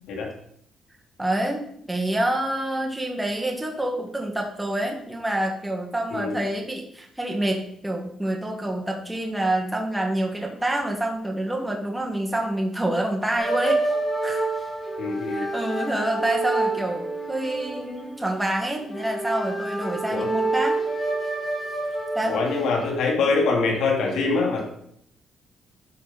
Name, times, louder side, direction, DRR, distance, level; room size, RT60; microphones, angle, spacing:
voice 1, 1.2-13.8 14.2-14.4 15.3-20.7 22.1-22.4, right 1 dB, 10° right, 0 dB, 1.8 m, -27 dB
sound 1, 13.4-22.9, right 2 dB, 25° left, 2.9 m, -28 dB
voice 2, 15.0-15.5 20.1-20.3 22.3-24.6, left 4 dB, 80° left, -1 dB, 3.0 m, -24 dB
12.0 x 5.4 x 4.2 m, 0.68 s
cardioid pair, 90°, 0 cm